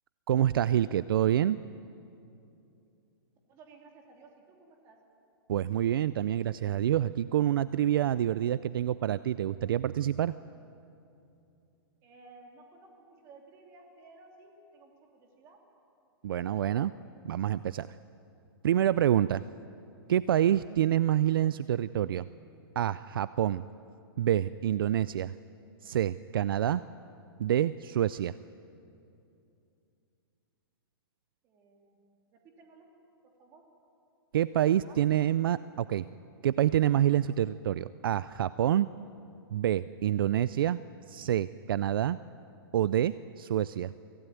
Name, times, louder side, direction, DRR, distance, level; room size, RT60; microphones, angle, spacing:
voice 1, 0.3-1.6 5.5-10.3 16.2-16.9 17.3-17.9 18.6-19.4 20.1-22.3 22.8-23.6 24.2-25.3 25.8-26.8 27.4-28.3 34.3-36.1 36.4-38.9 39.5-40.8 41.1-42.2 42.7-43.9, right 11 dB, 60° right, 16 dB, 0.4 m, -27 dB
voice 2, 3.5-5.0 12.0-15.6 16.4-16.9 31.4-32.0 32.3-32.9 33.4-33.6 34.8-35.0, right 3 dB, 20° right, 1 dB, 2.8 m, -56 dB
24.0 x 16.0 x 9.3 m, 2.7 s
hypercardioid pair, 170°, 13 cm